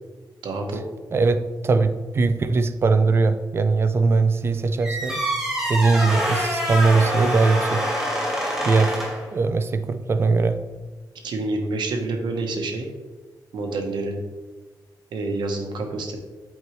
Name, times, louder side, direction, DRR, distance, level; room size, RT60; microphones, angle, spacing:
voice 1, 0.4-0.8 11.2-12.9 13.5-14.2 15.1-16.2, right 2 dB, 85° right, 3 dB, 1.0 m, -27 dB
voice 2, 1.1-5.2 5.7-7.8 8.6-9.0 9.3-10.6, right 4 dB, 35° right, 10 dB, 0.4 m, -20 dB
sound 1, 4.8-9.3, equal, 5° right, 1.2 m, -25 dB
7.7 x 4.6 x 3.1 m, 1.3 s
wide cardioid pair, 180°, 8 cm